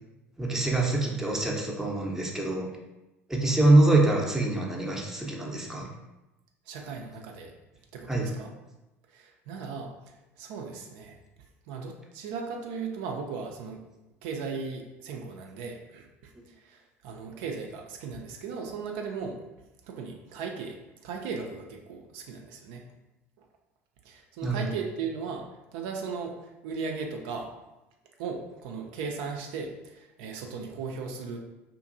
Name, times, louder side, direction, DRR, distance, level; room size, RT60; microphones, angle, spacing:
voice 1, 0.4-2.7 3.3-5.9 8.1-8.3 24.4-24.6, right 2 dB, 5° right, -1 dB, 0.5 m, -24 dB
voice 2, 6.7-7.5 7.9-8.5 9.1-9.9 10.4-11.2 11.7-13.8 14.2-19.4 19.8-20.8 21.0-22.8 24.0-25.4 25.7-27.5 28.2-31.4, right 5 dB, 60° right, 2 dB, 0.4 m, -37 dB
2.6 x 2.5 x 2.5 m, 0.99 s
hypercardioid pair, 70°, 7 cm